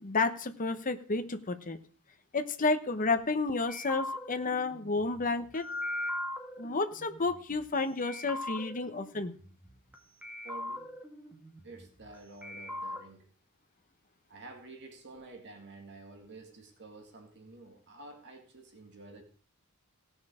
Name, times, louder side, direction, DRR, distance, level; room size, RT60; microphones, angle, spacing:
voice 1, 0.0-1.8 2.3-5.7 6.6-9.4, left 3 dB, 35° left, 0.9 m, -31 dB
sound 1, 3.7-7.7 8.0-10.0 10.2-12.2 12.4-13.0, left 1 dB, 5° right, 2.0 m, -40 dB
voice 2, 10.4-10.9 11.6-13.3 14.3-19.2, right 2 dB, 55° right, 2.1 m, -50 dB
17.0 x 6.4 x 4.9 m
head